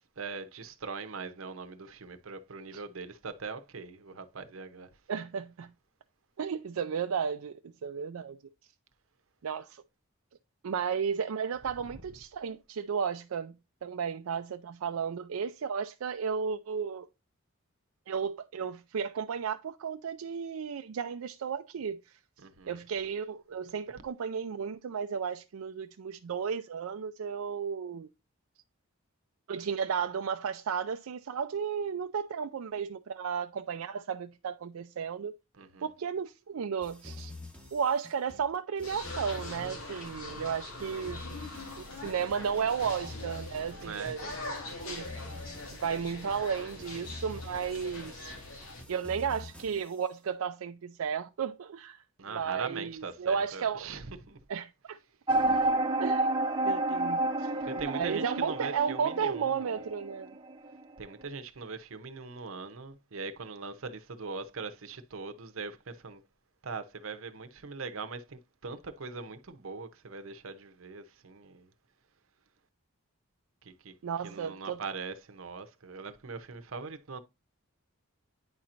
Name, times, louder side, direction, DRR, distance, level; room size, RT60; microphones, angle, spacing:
voice 1, 0.2-4.9 22.4-22.7 35.6-35.8 43.8-44.8 52.2-54.4 57.6-59.6 61.0-66.2 66.6-71.7 73.6-73.9 74.2-77.2, right 4 dB, 70° right, 0.8 m, -41 dB
voice 2, 5.1-5.7 6.4-8.4 9.4-9.8 10.6-17.1 18.1-22.2 22.7-28.1 29.5-35.4 35.8-37.3 37.7-41.2 41.8-44.2 44.8-45.1 45.8-48.4 48.9-53.9 54.5-55.0 56.0-56.3 56.6-57.5 57.8-60.3 74.0-74.8, right 6 dB, 85° right, 0.4 m, -34 dB
sound 1, 36.8-50.0, left 2 dB, 5° left, 1.1 m, -47 dB
sound 2, 38.8-48.8, left 2 dB, 75° left, 2.0 m, -42 dB
sound 3, 55.3-60.8, right 2 dB, 20° right, 0.7 m, -30 dB
9.5 x 4.3 x 2.5 m
head